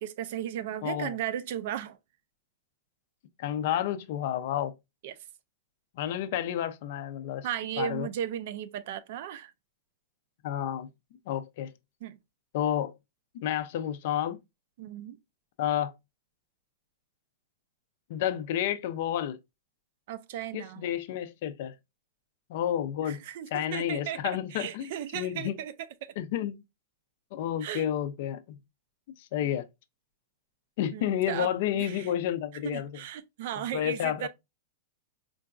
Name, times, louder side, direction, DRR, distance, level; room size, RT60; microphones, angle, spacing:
voice 1, 0.0-2.0 5.0-5.2 7.4-9.5 12.0-12.2 14.8-15.2 20.1-20.9 23.0-25.7 26.0-26.1 27.6-27.9 30.9-32.1 32.6-34.3, right 10 dB, 55° right, 0.3 m, -36 dB
voice 2, 0.8-1.2 3.4-4.7 6.0-7.5 7.8-8.1 10.4-10.9 11.3-11.7 12.5-12.9 13.3-14.4 15.6-15.9 18.1-19.4 20.5-21.7 22.5-23.2 23.5-25.6 26.2-26.6 27.3-28.6 29.2-29.7 30.8-32.9 33.7-34.3, left 11 dB, 50° left, 0.4 m, -30 dB
3.8 x 2.3 x 2.3 m
supercardioid pair, 165°, 0 cm